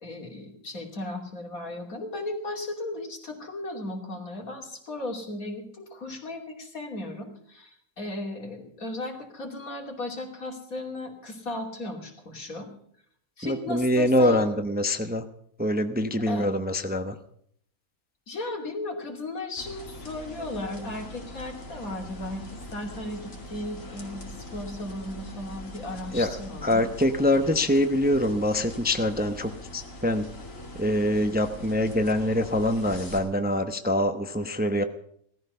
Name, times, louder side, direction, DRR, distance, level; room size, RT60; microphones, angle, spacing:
voice 1, 0.0-12.7 13.4-14.5 16.3-16.5 18.3-26.8, left 2 dB, 85° left, 1 dB, 3.2 m, -36 dB
voice 2, 13.4-15.2 15.6-17.1 26.1-26.3 26.6-30.3 30.8-34.8, left 1 dB, 10° right, 8 dB, 0.7 m, -24 dB
sound 1, 19.6-33.2, left 1 dB, 65° left, 2.9 m, -42 dB
17.0 x 13.5 x 5.6 m, 0.66 s
omnidirectional pair, 1.4 m